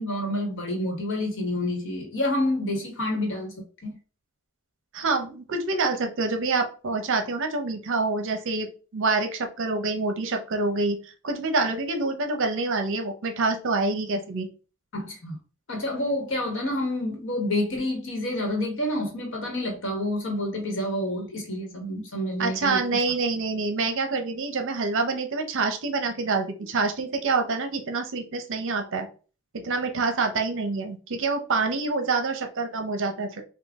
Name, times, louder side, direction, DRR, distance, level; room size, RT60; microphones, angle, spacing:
voice 1, 0.0-3.9 14.9-15.3 15.7-23.0, left 1 dB, 60° left, 2 dB, 1.3 m, -28 dB
voice 2, 4.9-11.0 11.2-14.5 22.4-29.1 29.5-33.4, right 3 dB, 60° right, 6 dB, 0.7 m, -26 dB
3.6 x 2.3 x 3.5 m, 0.36 s
head